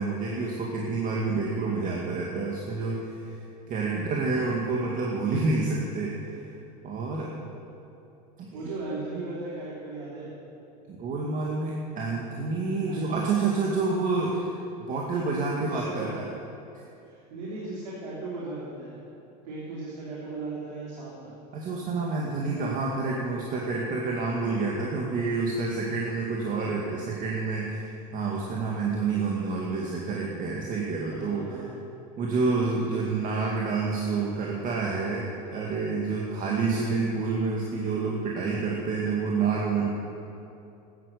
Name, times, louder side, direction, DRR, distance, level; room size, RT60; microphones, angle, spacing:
voice 1, 0.0-3.4 3.7-6.4 6.8-7.3 8.4-8.7 10.9-16.3 21.5-31.7 32.2-39.9, right 4 dB, 40° right, -3 dB, 2.2 m, -28 dB
voice 2, 8.5-10.3 12.9-13.0 15.6-16.1 17.0-19.1 19.4-21.4 31.1-31.8, right 3 dB, 80° right, -6 dB, 3.5 m, -37 dB
14.0 x 11.0 x 6.8 m, 2.8 s
hypercardioid pair, 105°, 21 cm